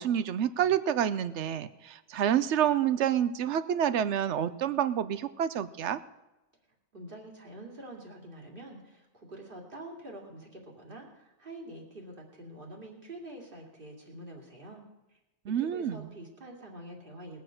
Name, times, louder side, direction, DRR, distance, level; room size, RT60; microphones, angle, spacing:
voice 1, 0.0-6.0 15.5-16.1, right 9 dB, 80° right, 14 dB, 1.0 m, -28 dB
voice 2, 6.9-15.2 15.6-17.4, right 1 dB, 50° right, 0 dB, 2.7 m, -46 dB
20.0 x 6.9 x 6.4 m, 1.0 s
omnidirectional pair, 1.2 m